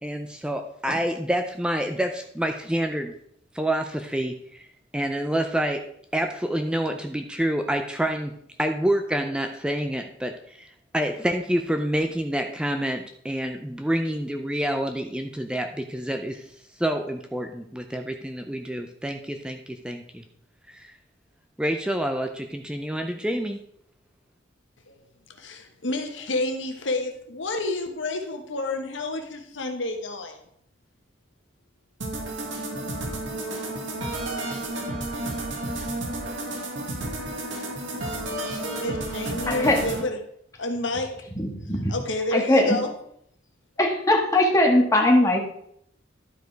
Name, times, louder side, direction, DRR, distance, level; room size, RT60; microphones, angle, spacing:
voice 1, 0.0-3.1 3.5-4.7 4.9-5.8 6.1-8.3 8.6-16.5 16.8-20.2 20.7-20.9 21.6-23.6, right 1 dB, 5° right, 5 dB, 0.5 m, -27 dB
voice 2, 25.4-30.4 38.8-40.2 40.6-41.2 41.9-42.9, left 2 dB, 70° left, 4 dB, 1.3 m, -29 dB
sound 1, 32.0-40.0, right 1 dB, 85° right, 1.8 m, -31 dB
voice 3, 39.5-39.8 41.3-41.9 42.3-42.8 43.8-45.4, left 1 dB, 15° left, 0 dB, 1.6 m, -20 dB
11.5 x 5.1 x 4.6 m, 0.70 s
head